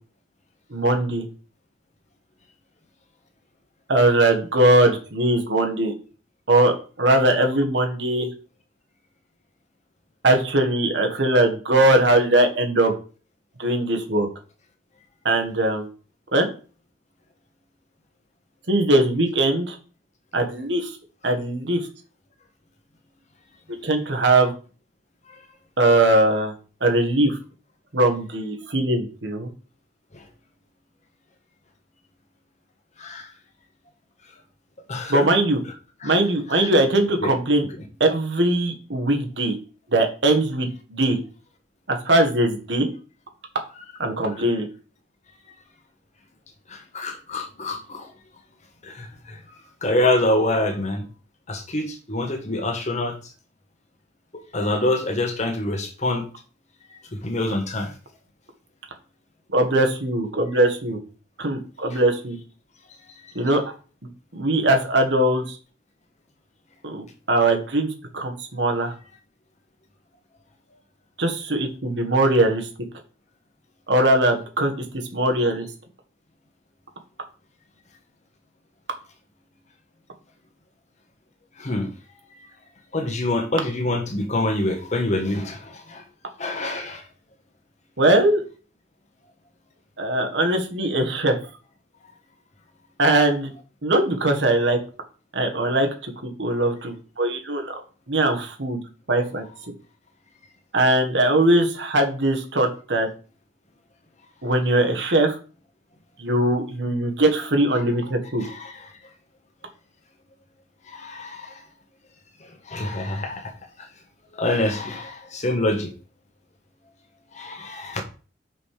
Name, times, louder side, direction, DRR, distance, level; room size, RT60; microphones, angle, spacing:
voice 1, 0.7-1.2 3.9-5.9 6.5-8.3 10.2-12.9 13.6-14.3 15.2-15.9 16.3-16.5 18.7-19.8 20.3-20.9 21.2-21.8 23.8-24.5 25.8-26.5 26.8-27.4 27.9-29.5 35.1-35.6 36.0-37.7 38.0-39.5 39.9-41.2 41.9-42.9 44.0-44.7 59.5-61.0 61.4-62.4 63.3-63.6 64.3-65.6 66.8-68.9 71.2-72.7 73.9-74.8 75.1-75.6 88.0-88.4 90.0-91.3 93.0-93.5 93.8-94.8 95.3-97.8 98.1-98.8 99.1-99.4 100.7-103.1 104.4-105.3 106.2-108.4, right 1 dB, 75° right, 1.7 m, -20 dB
voice 2, 34.9-35.3 36.0-36.1 36.5-36.7 37.2-37.3 46.7-48.1 48.8-49.4 49.8-51.1 51.5-53.2 54.5-56.2 57.1-57.9 61.9-62.0 81.6-81.9 82.9-86.0 86.4-87.0 108.4-108.8 110.9-111.5 112.7-113.5 114.3-115.9 117.3-118.0, left 1 dB, 40° left, 1.4 m, -26 dB
6.1 x 5.4 x 5.0 m
head